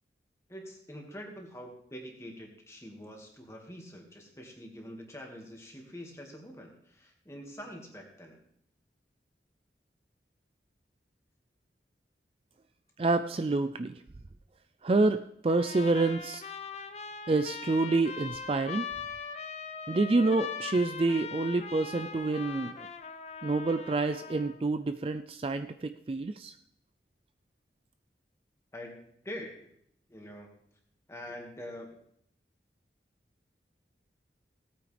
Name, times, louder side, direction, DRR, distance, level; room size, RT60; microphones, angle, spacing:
voice 1, 0.5-8.4 28.7-29.7 30.1-30.6 31.1-31.9, equal, 15° left, 1 dB, 1.8 m, -45 dB
voice 2, 13.0-13.9 14.8-16.4 17.3-18.9 19.9-22.8 23.4-26.5, right 3 dB, 30° right, 9 dB, 0.4 m, -28 dB
Trumpet, 15.5-24.6, left 5 dB, 35° left, 0.7 m, -41 dB
17.5 x 8.9 x 3.3 m, 0.70 s
head